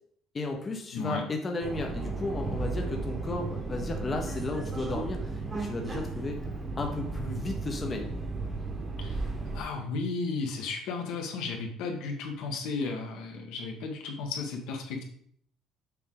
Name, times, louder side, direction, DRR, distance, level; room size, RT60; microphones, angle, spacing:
voice 1, 0.3-6.4 6.8-8.1, left 2 dB, 20° left, 2 dB, 0.7 m, -34 dB
voice 2, 0.9-1.2 9.0-9.2 9.5-15.0, left 4 dB, 80° left, 2 dB, 1.5 m, -34 dB
Subway metro underground, 1.6-9.6, right 3 dB, 20° right, 1.0 m, -34 dB
6.8 x 4.9 x 3.9 m, 0.62 s
cardioid pair, 175°, 0 cm